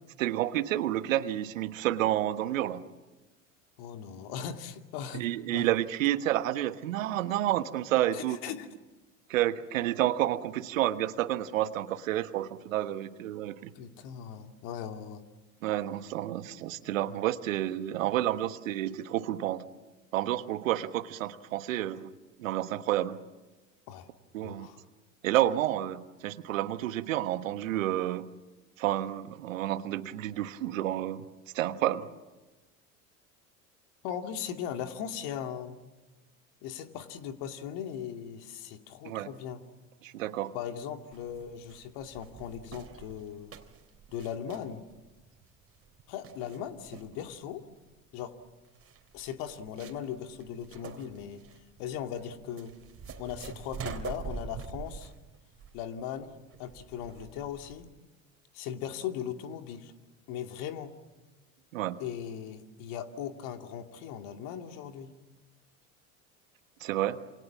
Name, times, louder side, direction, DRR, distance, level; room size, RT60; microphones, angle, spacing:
voice 1, 0.2-2.8 5.1-8.4 9.3-13.7 15.6-19.6 20.1-22.1 22.4-23.2 24.3-24.7 25.2-28.3 28.8-31.2 31.5-32.1 39.0-39.3 40.0-40.5 61.7-62.0 66.8-67.2, right 13 dB, 75° right, 12 dB, 1.4 m, -30 dB
voice 2, 3.8-5.3 5.5-5.7 8.1-8.7 13.7-15.2 23.9-24.1 24.4-24.8 34.0-35.8 36.6-39.6 40.5-43.5 44.1-44.8 46.1-47.6 48.1-48.3 49.1-51.4 51.8-52.7 53.2-55.1 55.7-56.3 56.6-57.9 58.5-59.9 60.3-60.9 62.0-65.1, left 9 dB, 60° left, 6 dB, 2.6 m, -38 dB
sound 1, 41.1-57.9, right 6 dB, 35° right, 3.3 m, -45 dB
28.0 x 27.5 x 7.4 m, 1.1 s
hypercardioid pair, 75°, 40 cm